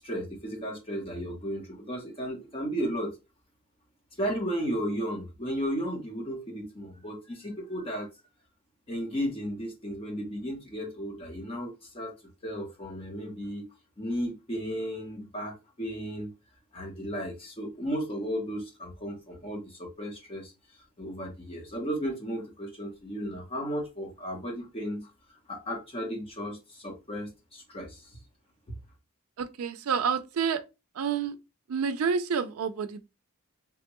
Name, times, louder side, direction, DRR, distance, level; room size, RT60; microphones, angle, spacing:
voice 1, 0.0-3.2 4.2-8.1 8.9-12.2 12.4-13.7 14.0-16.3 16.7-20.5 21.0-25.1 25.5-28.2, equal, 25° left, 0.8 m, -34 dB
voice 2, 29.4-30.6 30.9-31.4 31.7-33.1, right 6 dB, 80° right, 0.4 m, -29 dB
3.5 x 2.1 x 2.9 m
head